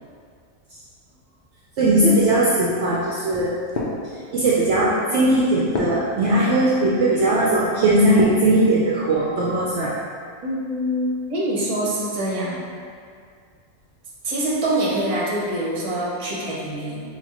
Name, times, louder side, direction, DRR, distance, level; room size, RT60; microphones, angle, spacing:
voice 1, 1.8-3.5 4.3-9.9, right 1 dB, 65° right, -6 dB, 0.8 m, -19 dB
sound 1, 2.0-8.5 9.0-9.7, left 2 dB, 60° left, 0.5 m, -34 dB
voice 2, 10.4-12.6 14.2-17.0, right 1 dB, 35° right, -6 dB, 0.8 m, -25 dB
5.6 x 2.4 x 2.9 m, 2.2 s
omnidirectional pair, 1.4 m